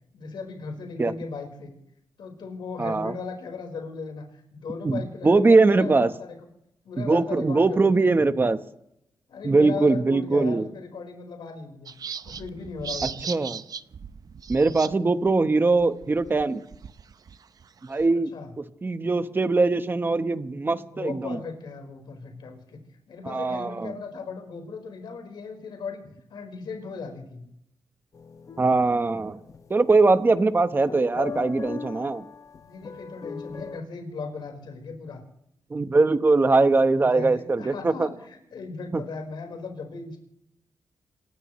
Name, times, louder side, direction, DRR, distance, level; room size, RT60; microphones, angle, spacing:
voice 1, 0.1-1.7 2.2-6.3 6.8-8.1 9.3-11.9 12.2-13.3 18.3-18.5 20.9-22.8 23.1-26.0 26.3-27.4 32.7-35.2 37.0-40.2, left 4 dB, 75° left, 2 dB, 4.7 m, -37 dB
voice 2, 2.8-3.1 4.8-6.1 7.0-8.6 9.4-10.7 13.0-13.6 14.5-16.6 17.8-18.3 18.8-21.4 23.2-23.9 28.6-29.4 29.7-32.2 35.7-38.1 38.9-39.0, right 3 dB, 25° right, 9 dB, 1.1 m, -21 dB
sound 1, 11.9-14.9 15.3-15.4 15.7-18.1, right 6 dB, 50° right, 0.6 m, -38 dB
sound 2, 28.1-33.8, left 5 dB, 45° left, 0.7 m, -40 dB
28.0 x 16.5 x 3.2 m, 0.78 s
cardioid pair, 105°, 8 cm